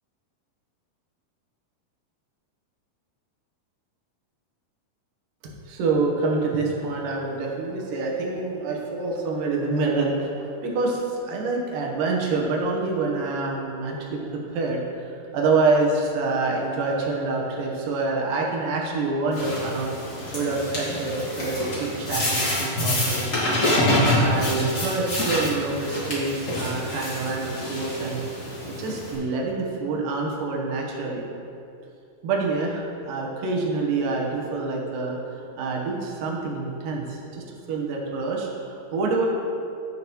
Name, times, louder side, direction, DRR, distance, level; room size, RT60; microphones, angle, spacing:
voice 1, 5.4-19.9 20.3-23.3 24.2-31.2 32.2-39.3, right 3 dB, 65° right, -1 dB, 2.5 m, -27 dB
sound 1, 19.3-29.1, left 1 dB, 85° left, 0.6 m, -26 dB
14.0 x 5.9 x 3.0 m, 2.7 s
omnidirectional pair, 4.7 m